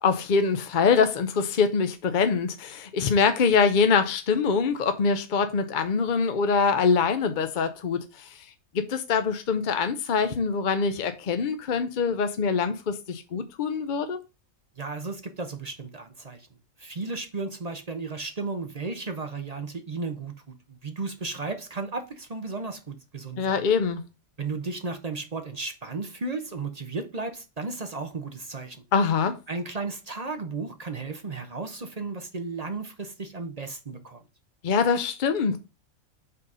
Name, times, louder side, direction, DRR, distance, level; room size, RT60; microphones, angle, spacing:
voice 1, 0.0-8.4 8.7-14.2 23.4-24.0 28.9-29.4 34.6-35.6, left 5 dB, 50° left, 0.6 m, -24 dB
voice 2, 14.8-16.5 16.8-23.6 24.4-28.8 29.5-34.2, right 3 dB, 35° right, 0.7 m, -34 dB
5.5 x 4.0 x 5.4 m
omnidirectional pair, 1.5 m